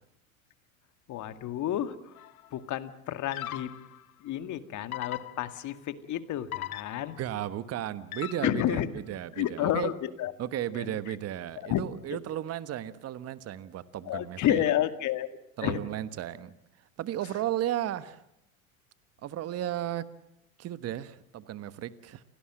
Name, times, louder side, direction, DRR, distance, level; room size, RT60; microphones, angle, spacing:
voice 1, 1.1-2.2 2.5-3.7 4.2-7.2 8.4-8.9 9.4-10.3 10.7-11.2 11.6-11.8 12.1-12.2 14.1-15.3 15.6-15.8, left 12 dB, 45° left, 11 dB, 2.1 m, -30 dB
sound 1, 2.2-2.5 3.3-4.0 4.9-5.8 6.5-7.3 8.1-8.8, left 13 dB, 80° left, 1.2 m, -39 dB
voice 2, 7.2-8.8 9.1-9.9 10.4-14.6 15.6-16.5 17.0-18.2 19.2-20.0 20.6-22.2, right 12 dB, 35° right, 15 dB, 1.3 m, -34 dB
28.5 x 18.0 x 7.7 m, 0.85 s
hypercardioid pair, 90°, 42 cm